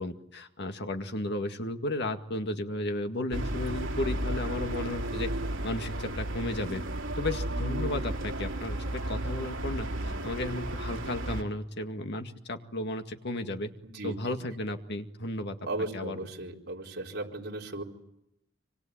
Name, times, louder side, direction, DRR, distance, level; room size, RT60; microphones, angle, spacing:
voice 1, 0.0-5.3 5.6-6.8 7.2-13.7 14.0-15.6 15.9-16.2, left 1 dB, 60° left, 6 dB, 2.0 m, -34 dB
sound 1, 3.3-11.4, right 1 dB, 80° right, 2.8 m, -33 dB
voice 2, 13.8-14.3 15.7-17.8, right 2 dB, 55° right, -1 dB, 4.3 m, -36 dB
26.0 x 24.5 x 8.7 m, 0.83 s
head